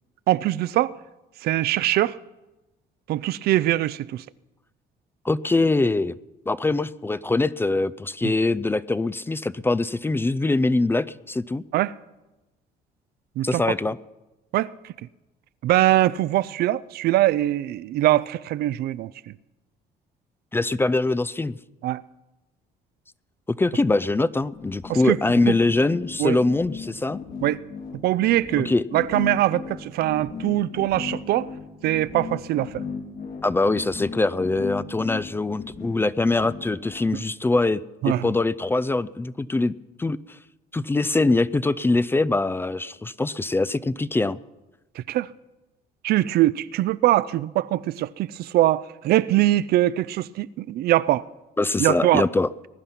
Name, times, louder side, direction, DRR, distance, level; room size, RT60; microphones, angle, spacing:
voice 1, 0.3-0.9 1.4-2.2 3.1-4.2 8.2-8.3 11.7-11.9 13.4-13.6 14.5-14.7 15.6-19.1 21.8-22.0 24.9-25.2 25.5-25.6 26.2-26.4 27.4-27.6 28.0-31.5 31.8-32.8 38.0-38.3 45.0-45.3 46.0-51.2 51.8-52.2, right 15 dB, 70° right, 0.5 m, -22 dB
voice 2, 5.2-6.1 6.5-11.6 13.4-14.0 20.5-21.6 23.6-27.2 28.7-28.8 33.4-37.8 38.1-39.7 40.0-40.4 40.7-44.4 51.6-52.5, left 2 dB, 15° left, 0.4 m, -23 dB
sound 1, 24.5-37.1, left 5 dB, 60° left, 2.6 m, -36 dB
20.0 x 11.0 x 5.8 m
cardioid pair, 110°, 17 cm